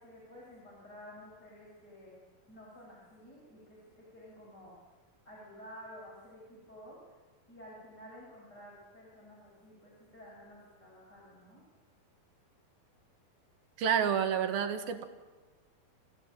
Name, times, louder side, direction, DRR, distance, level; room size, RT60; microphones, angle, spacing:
voice 1, 0.0-2.2 2.5-4.7 5.2-7.0 7.5-11.6, equal, 25° left, -6 dB, 8.0 m, -52 dB
voice 2, 13.8-15.0, right 8 dB, 75° right, 7 dB, 3.5 m, -29 dB
28.5 x 16.0 x 9.1 m, 1.3 s
omnidirectional pair, 4.4 m